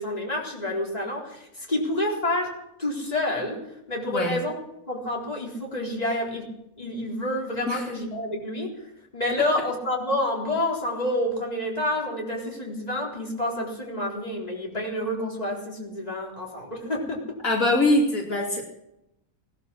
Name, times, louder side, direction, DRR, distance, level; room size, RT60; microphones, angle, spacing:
voice 1, 0.0-2.5 2.8-3.6 3.9-4.6 4.9-6.5 6.8-8.7 9.1-17.2, left 1 dB, 25° left, -2 dB, 4.2 m, -28 dB
voice 2, 17.4-18.6, left 2 dB, 70° left, 0 dB, 3.1 m, -23 dB
18.5 x 12.5 x 6.3 m, 0.84 s
omnidirectional pair, 1.5 m